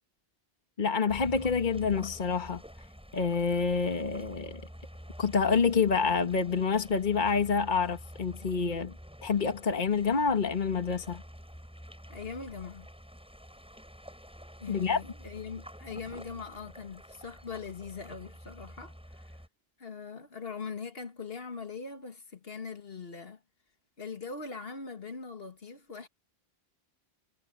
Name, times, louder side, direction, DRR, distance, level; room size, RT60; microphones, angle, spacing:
voice 1, 0.8-2.6 3.1-4.6 5.2-8.9 9.2-11.2 14.7-15.0, left 5 dB, 50° left, 1.5 m, -27 dB
sound 1, 1.1-19.5, equal, 5° right, 7.8 m, -48 dB
voice 2, 12.1-12.9 14.6-19.4 19.8-23.4 24.0-26.1, left 5 dB, 65° left, 2.0 m, -41 dB
omnidirectional pair, 1.1 m